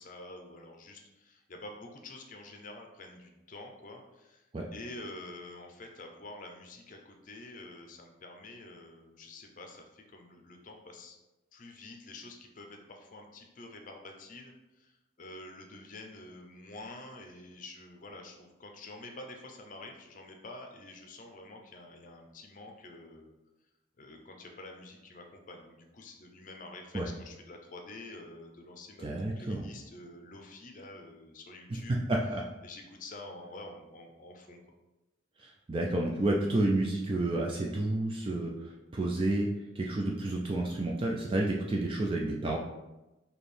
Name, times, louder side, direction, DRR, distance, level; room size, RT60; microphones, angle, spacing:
voice 1, 0.0-4.4 4.7-11.2 11.5-14.9 15.2-23.3 24.0-29.1 29.4-31.9 32.6-34.8, left 2 dB, 40° left, 3 dB, 0.6 m, -48 dB
voice 2, 29.0-29.7 31.9-32.4 35.4-39.5 39.8-42.6, right 2 dB, 25° right, -1 dB, 0.3 m, -30 dB
4.3 x 2.9 x 3.3 m, 1.0 s
head